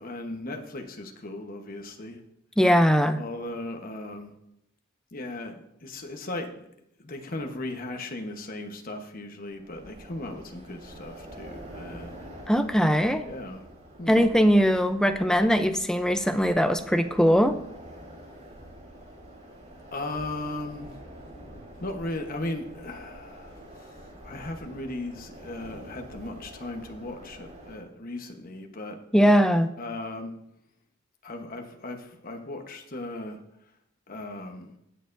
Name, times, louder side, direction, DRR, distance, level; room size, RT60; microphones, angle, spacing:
voice 1, 0.0-2.2 3.2-4.3 5.1-6.7 7.0-12.3 13.2-13.6 14.0-14.3 19.9-21.0 21.8-29.0 29.8-30.3 31.2-33.4 34.1-34.7, left 2 dB, 45° left, 4 dB, 1.1 m, -37 dB
voice 2, 2.6-3.2 12.5-13.2 14.1-17.5 29.1-29.7, equal, 5° left, 8 dB, 0.5 m, -21 dB
sound 1, 9.5-27.8, right 1 dB, 40° right, 4.3 m, -46 dB
18.0 x 6.7 x 2.6 m, 0.80 s
head